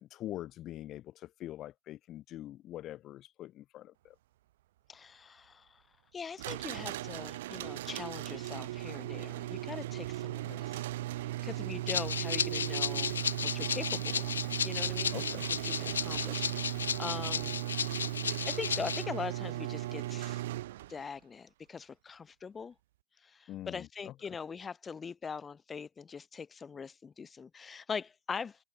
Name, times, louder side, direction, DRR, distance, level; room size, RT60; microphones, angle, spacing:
voice 1, 0.0-4.1 11.7-12.0 15.1-15.5 23.5-24.4, left 13 dB, 30° left, 3.0 m, -44 dB
voice 2, 4.9-5.8 6.1-10.8 11.1-15.2 15.6-17.6 18.5-20.4 20.9-22.7 23.2-28.6, left 5 dB, 15° left, 5.0 m, -42 dB
sound 1, 6.4-21.1, right 15 dB, 55° right, 5.1 m, -37 dB
Rattle (instrument), 11.9-19.0, left 7 dB, 80° left, 3.7 m, -34 dB
hypercardioid pair, 115°, 0 cm